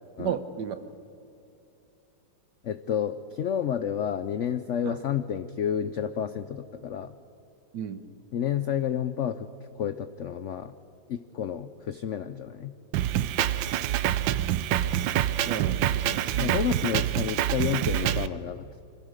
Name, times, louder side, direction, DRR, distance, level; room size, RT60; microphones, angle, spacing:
voice 1, 0.2-0.8 4.8-4.9 7.7-8.0 15.4-16.6, right 8 dB, 70° right, 10 dB, 1.6 m, -33 dB
voice 2, 2.6-7.2 8.3-9.5 9.8-10.7 11.1-12.7 16.4-18.8, left 9 dB, 80° left, 11 dB, 0.6 m, -30 dB
Drum kit, 12.9-18.3, right 12 dB, 85° right, 1.4 m, -26 dB
26.0 x 15.5 x 6.6 m, 2.7 s
omnidirectional pair, 2.0 m